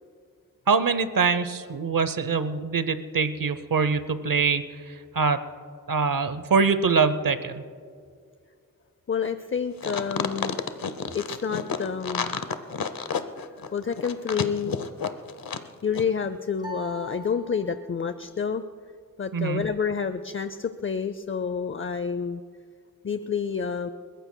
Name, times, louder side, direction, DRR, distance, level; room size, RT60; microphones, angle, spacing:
voice 1, 0.7-5.4 5.9-7.6 19.3-19.6, right 5 dB, 75° right, 12 dB, 0.8 m, -24 dB
voice 2, 9.1-10.6 11.1-12.3 13.4-14.7 15.8-18.6 19.2-22.4 23.0-23.9, left 6 dB, 40° left, 11 dB, 0.5 m, -29 dB
sound 1, 9.8-15.7 15.9-16.0, left 6 dB, 85° left, 0.8 m, -30 dB
sound 2, 16.6-18.1, equal, 10° right, 3.4 m, -41 dB
29.5 x 14.5 x 2.2 m, 2.2 s
wide cardioid pair, 65°, 34 cm